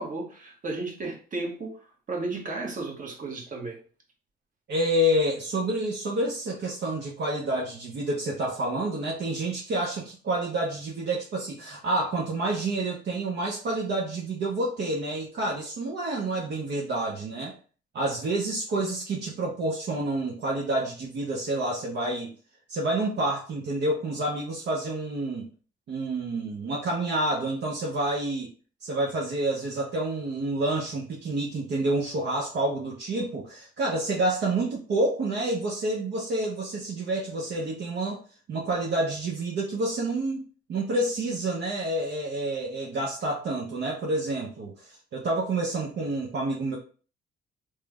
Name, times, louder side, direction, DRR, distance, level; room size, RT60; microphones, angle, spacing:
voice 1, 0.0-1.8 2.1-3.8, right 3 dB, 40° right, 0 dB, 1.1 m, -33 dB
voice 2, 4.7-17.5 17.9-22.3 22.7-25.5 25.9-28.5 28.8-38.2 38.5-46.8, right 1 dB, 60° right, -2 dB, 0.7 m, -28 dB
3.1 x 2.1 x 3.4 m, 0.39 s
cardioid pair, 90°, 20 cm